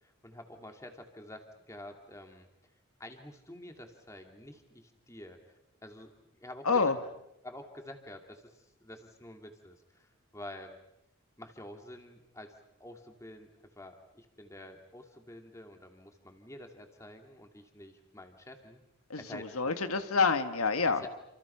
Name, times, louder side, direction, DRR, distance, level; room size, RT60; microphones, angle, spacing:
voice 1, 0.0-2.5 3.0-6.1 6.4-6.9 7.4-10.7 11.4-18.8 19.2-19.8 21.0-21.1, left 1 dB, 15° left, 4 dB, 2.6 m, -49 dB
voice 2, 6.6-7.0 19.1-21.0, left 4 dB, 90° left, 9 dB, 1.7 m, -28 dB
29.0 x 28.0 x 5.8 m, 0.83 s
head